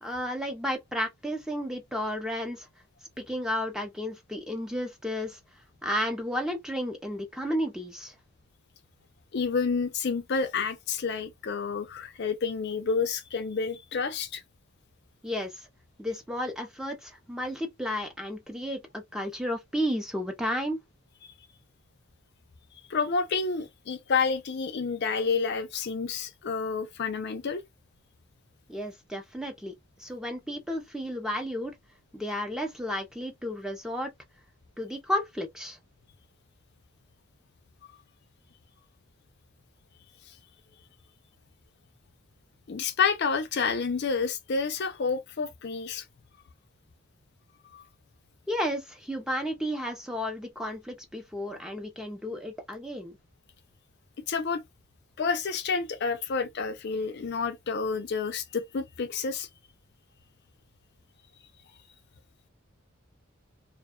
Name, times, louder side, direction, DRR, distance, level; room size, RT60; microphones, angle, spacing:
voice 1, 0.0-2.7 3.2-5.4 5.8-8.1 15.2-15.7 16.0-20.8 28.7-29.7 30.0-31.7 32.1-34.1 34.8-35.8 48.5-53.2, equal, 5° right, 0.5 m, -32 dB
voice 2, 9.3-14.4 22.9-27.6 37.8-37.9 42.7-46.0 47.7-47.8 54.3-54.6 55.2-59.5, left 5 dB, 50° left, 0.4 m, -29 dB
2.5 x 2.2 x 2.3 m
head